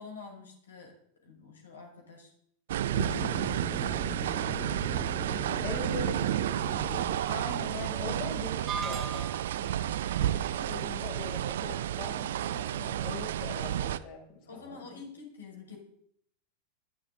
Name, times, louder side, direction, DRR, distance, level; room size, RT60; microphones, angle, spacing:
voice 1, 0.0-2.3 2.9-4.0 5.3-6.1 6.4-6.7 8.2-8.4 9.6-10.8 14.5-15.8, left 5 dB, 70° left, 1 dB, 6.1 m, -48 dB
sound 1, 2.7-14.0, right 11 dB, 60° right, 0.7 m, -31 dB
sound 2, 2.9-7.2, left 1 dB, ahead, 1.7 m, -40 dB
voice 2, 5.6-6.1 7.3-9.3 10.2-15.0, left 5 dB, 45° left, -2 dB, 7.7 m, -41 dB
sound 3, 8.7-9.7, right 5 dB, 25° right, 2.0 m, -37 dB
20.5 x 13.0 x 4.1 m, 0.66 s
figure-of-eight pair, 90°, 0 cm